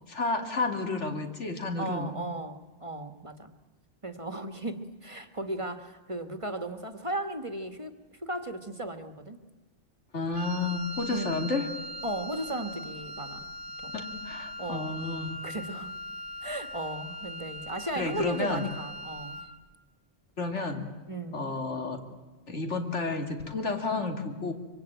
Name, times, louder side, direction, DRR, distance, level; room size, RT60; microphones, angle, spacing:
voice 1, 0.1-2.1 10.1-11.7 13.9-15.4 18.0-18.7 20.4-20.9 21.3-22.0 22.5-24.5, left 3 dB, 80° left, 5 dB, 3.0 m, -31 dB
voice 2, 1.8-3.5 4.0-7.9 8.2-9.4 11.1-11.5 12.0-13.5 13.8-14.0 14.6-14.9 15.4-16.0 16.4-19.4 21.1-21.5, right 1 dB, 25° right, 9 dB, 1.5 m, -36 dB
Wind instrument woodwind instrument, 10.3-19.6, left 1 dB, 65° right, 1.7 m, -40 dB
25.0 x 24.0 x 9.0 m, 1.2 s
omnidirectional pair, 1.2 m